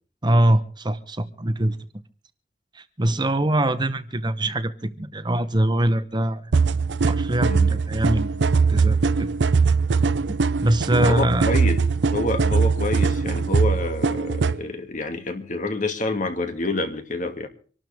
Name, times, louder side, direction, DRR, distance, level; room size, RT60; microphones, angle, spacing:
voice 1, 0.2-1.8 2.7-6.5 7.1-8.4 8.7-9.3 10.3-11.5, right 1 dB, 25° right, 1.0 m, -23 dB
sound 1, 6.5-14.6, right 4 dB, 80° right, 0.6 m, -21 dB
voice 2, 11.0-11.8 12.1-17.5, left 2 dB, 45° left, 2.5 m, -27 dB
26.0 x 12.5 x 3.6 m
head